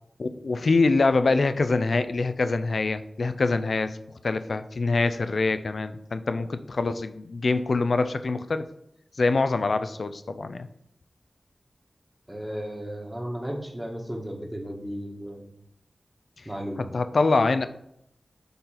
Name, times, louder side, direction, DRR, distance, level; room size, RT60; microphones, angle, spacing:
voice 1, 0.2-4.0 4.2-8.7 9.2-10.7 16.9-17.7, left 3 dB, 70° left, 11 dB, 0.5 m, -24 dB
voice 2, 12.3-15.5 16.4-16.8, equal, 10° right, 0 dB, 1.6 m, -34 dB
6.8 x 3.9 x 5.8 m, 0.76 s
wide cardioid pair, 65°, 0 cm